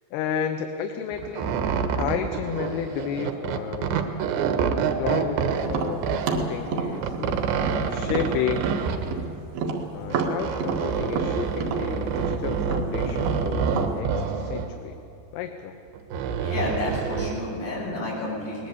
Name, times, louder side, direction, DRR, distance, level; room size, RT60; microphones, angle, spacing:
voice 1, 0.1-1.5 2.0-4.1 5.0-7.4 7.9-8.7 9.9-15.0 15.3-15.8, left 8 dB, 75° left, 6 dB, 2.8 m, -31 dB
sound 1, 1.1-6.5 6.9-9.3 10.0-14.7 15.9-17.4, right 6 dB, 85° right, 3.5 m, -27 dB
Tap, 5.6-9.3 9.6-13.9, right 5 dB, 70° right, 3.8 m, -29 dB
voice 2, 16.4-18.7, left 2 dB, 40° left, -5 dB, 8.9 m, -30 dB
22.5 x 19.5 x 8.2 m, 2.9 s
omnidirectional pair, 4.9 m